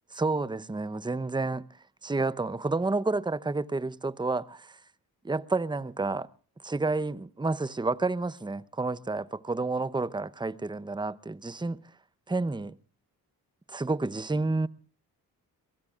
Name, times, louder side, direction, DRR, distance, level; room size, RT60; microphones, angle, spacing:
voice 1, 0.1-1.6 2.0-4.8 5.2-6.3 6.6-11.8 12.3-12.8 13.7-14.7, right 3 dB, 10° right, 0.8 m, -30 dB
25.0 x 22.0 x 2.5 m
supercardioid pair, 50°, 42 cm